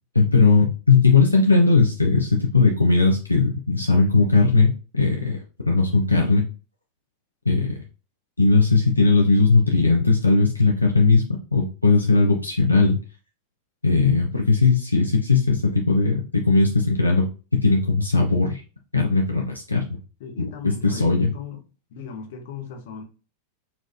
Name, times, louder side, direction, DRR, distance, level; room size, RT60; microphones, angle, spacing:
voice 1, 0.1-5.4 5.7-6.4 7.5-7.7 8.4-11.3 11.5-13.0 13.8-17.3 17.5-18.6 18.9-19.9 20.6-21.3, left 3 dB, 85° left, 0.5 m, -18 dB
voice 2, 20.2-21.6 21.9-23.0, left 6 dB, 55° left, 0.9 m, -37 dB
4.2 x 2.3 x 2.7 m
figure-of-eight pair, 90°, 0 cm